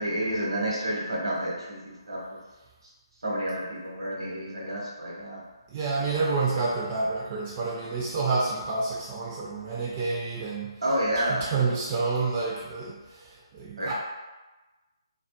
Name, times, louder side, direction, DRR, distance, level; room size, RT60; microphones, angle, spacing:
voice 1, 0.0-2.4 3.2-5.4 10.8-11.4 13.8-13.9, right 1 dB, 80° right, -4 dB, 0.9 m, -29 dB
voice 2, 5.7-10.7 11.3-13.3 13.5-13.9, right 4 dB, 25° right, -4 dB, 0.4 m, -28 dB
2.2 x 2.1 x 2.8 m, 1.1 s
figure-of-eight pair, 145°, 3 cm